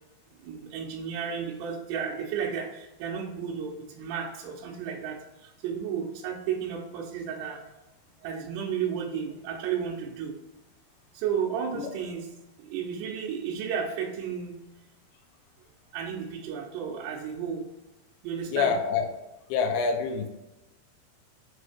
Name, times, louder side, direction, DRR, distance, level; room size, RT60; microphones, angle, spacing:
voice 1, 0.4-5.2 5.6-7.7 8.2-10.3 11.2-12.3 12.7-14.5 15.9-17.6 18.2-18.8, right 7 dB, 90° right, -2 dB, 2.9 m, -33 dB
voice 2, 18.5-19.1 19.5-20.3, left 5 dB, 85° left, 5 dB, 2.6 m, -26 dB
7.7 x 3.2 x 4.5 m, 1.0 s
omnidirectional pair, 4.7 m